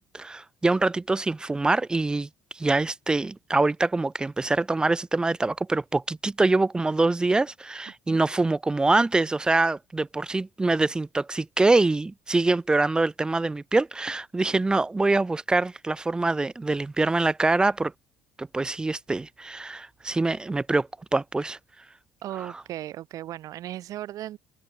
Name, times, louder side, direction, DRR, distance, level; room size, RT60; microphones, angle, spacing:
voice 1, 0.0-2.3 2.5-17.9 18.4-21.6, right 3 dB, 10° right, 0.4 m, -24 dB
voice 2, 22.2-24.4, right 13 dB, 60° right, 3.4 m, -36 dB
cardioid pair, 115°, 7 cm